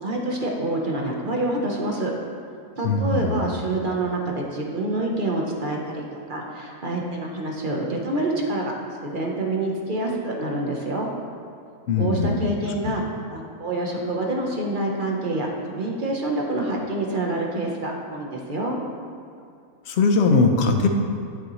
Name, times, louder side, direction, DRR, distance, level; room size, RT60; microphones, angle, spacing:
voice 1, 0.0-2.1 2.8-6.0 6.3-8.7 9.0-11.1 11.9-13.0 13.3-18.8, right 2 dB, 40° right, -1 dB, 1.1 m, -27 dB
voice 2, 2.8-3.5 11.9-12.5 12.8-12.9 19.9-20.9, left 3 dB, 55° left, 4 dB, 0.9 m, -20 dB
10.5 x 7.8 x 3.1 m, 2.4 s
omnidirectional pair, 1.6 m